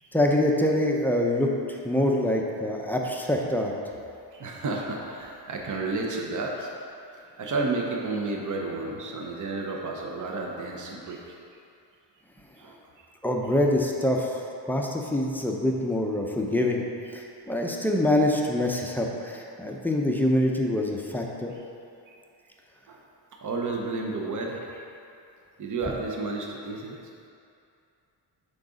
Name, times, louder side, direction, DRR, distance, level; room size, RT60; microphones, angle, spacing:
voice 1, 0.1-3.7 13.2-16.9 17.1-21.5, left 1 dB, 5° left, 0 dB, 0.5 m, -25 dB
voice 2, 4.3-6.7 7.4-11.3 12.6-12.8 22.1-22.2 22.9-23.0 23.4-24.6 25.6-27.0, right 3 dB, 45° right, 0 dB, 0.9 m, -31 dB
6.4 x 3.9 x 5.0 m, 2.6 s
cardioid pair, 105°, 44 cm